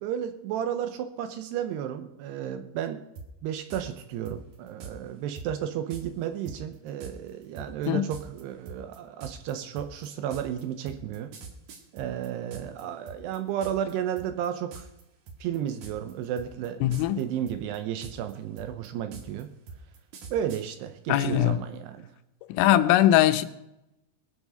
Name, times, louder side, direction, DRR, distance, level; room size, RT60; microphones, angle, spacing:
voice 1, 0.0-3.0 3.4-11.3 11.9-14.9 15.4-16.8 17.2-19.5 20.3-22.1, right 9 dB, 85° right, 8 dB, 2.4 m, -33 dB
sound 1, 3.2-3.3 3.7-3.8 4.3-4.9 5.4-5.5 5.9-6.0 6.5-12.8 13.1-13.9 14.2-14.5 14.7-15.0 15.3-16.1 16.4-17.2 17.5-20.6, right 5 dB, 60° right, 2.5 m, -43 dB
voice 2, 16.8-17.2 21.1-21.6 22.6-23.4, left 12 dB, 90° left, 10 dB, 3.4 m, -21 dB
21.5 x 7.3 x 5.4 m, 0.91 s
omnidirectional pair, 5.7 m